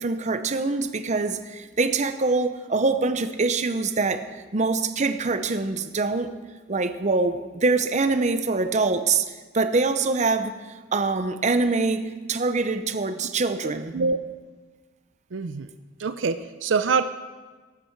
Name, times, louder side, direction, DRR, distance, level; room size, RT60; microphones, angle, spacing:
voice 1, 0.0-4.2 4.5-6.3 6.7-9.2 9.5-10.5 10.9-13.9, right 3 dB, 40° right, 10 dB, 0.7 m, -24 dB
voice 2, 13.6-14.2 15.3-15.7 16.0-17.0, right 4 dB, 70° right, 11 dB, 0.5 m, -25 dB
14.5 x 12.0 x 4.6 m, 1.4 s
head